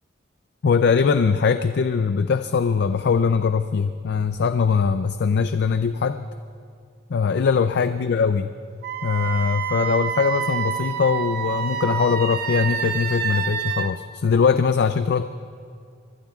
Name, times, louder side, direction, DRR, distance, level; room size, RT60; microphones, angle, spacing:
voice 1, 0.6-6.3 7.1-8.5 9.0-15.2, left 5 dB, 55° left, 10 dB, 0.4 m, -21 dB
Wind instrument woodwind instrument, 8.8-13.9, right 7 dB, 50° right, 0.9 m, -27 dB
26.0 x 23.5 x 2.4 m, 2.3 s
head